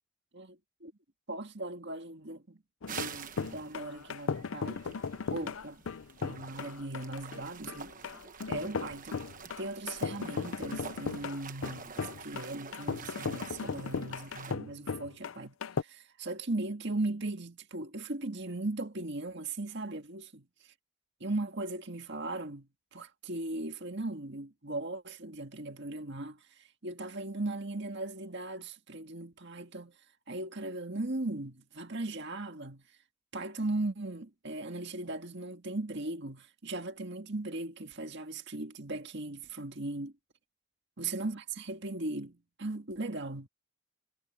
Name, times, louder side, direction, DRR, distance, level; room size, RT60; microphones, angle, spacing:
voice 1, 0.3-0.9 1.3-2.6 2.9-5.0 5.3-5.8 6.2-7.9 8.5-9.2 9.6-20.7 21.2-29.9 30.3-32.8 33.3-40.1 41.0-43.5, right 2 dB, 55° right, 1.9 m, -38 dB
sound 1, 2.8-15.8, left 5 dB, 65° left, 0.5 m, -37 dB
sound 2, 2.9-14.5, right 6 dB, 40° right, 1.2 m, -47 dB
head